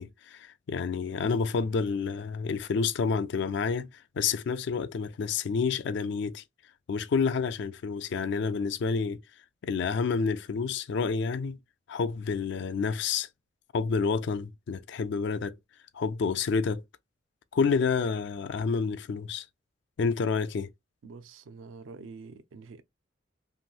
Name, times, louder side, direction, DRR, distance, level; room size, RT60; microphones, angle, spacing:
voice 1, 0.0-6.4 6.9-9.2 9.6-11.6 11.9-13.3 13.7-15.6 15.9-16.8 17.5-19.5 20.0-20.7, left 5 dB, 60° left, 0.3 m, -29 dB
voice 2, 21.0-22.8, right 4 dB, 80° right, 0.4 m, -46 dB
2.9 x 2.6 x 2.3 m
head